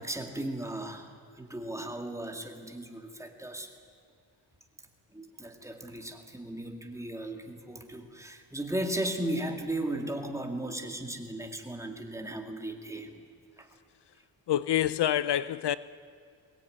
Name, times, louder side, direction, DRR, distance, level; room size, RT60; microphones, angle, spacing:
voice 1, 0.0-3.7 5.1-13.2 13.6-13.7, right 1 dB, 5° right, 2.2 m, -36 dB
voice 2, 14.5-15.8, left 11 dB, 65° left, 0.6 m, -27 dB
23.0 x 18.5 x 9.3 m
wide cardioid pair, 150°, 44 cm